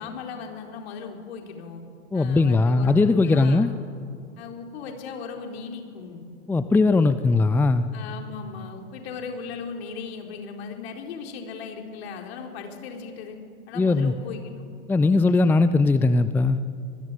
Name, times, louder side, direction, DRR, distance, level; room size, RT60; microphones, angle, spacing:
voice 1, 0.0-1.8 2.1-3.7 4.4-6.2 7.9-13.4 13.7-14.4, left 5 dB, 55° left, 3 dB, 4.4 m, -37 dB
voice 2, 2.1-3.7 6.5-7.9 13.8-14.1 14.9-16.6, left 3 dB, 5° left, 13 dB, 0.5 m, -19 dB
26.0 x 20.5 x 9.3 m, 2.4 s
figure-of-eight pair, 95°, 37 cm